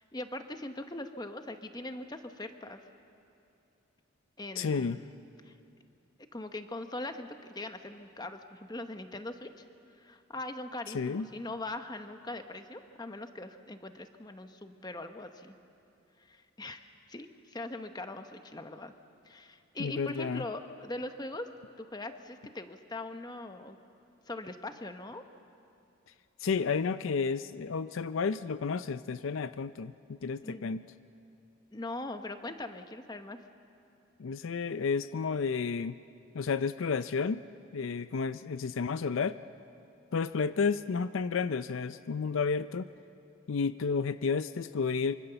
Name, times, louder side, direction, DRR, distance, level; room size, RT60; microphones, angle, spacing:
voice 1, 0.0-2.8 4.4-5.0 5.5-5.6 6.3-9.6 10.0-15.6 16.2-18.9 19.3-21.5 21.8-23.8 24.3-25.2 30.4-30.7 31.7-33.4, left 2 dB, 20° left, 7 dB, 1.0 m, -41 dB
voice 2, 4.6-5.0 10.9-11.3 19.8-20.4 26.4-30.8 34.2-35.9 36.3-37.4 37.7-39.4 40.1-42.9 43.5-45.2, left 5 dB, 70° left, 14 dB, 0.5 m, -31 dB
25.0 x 24.5 x 6.9 m, 2.7 s
head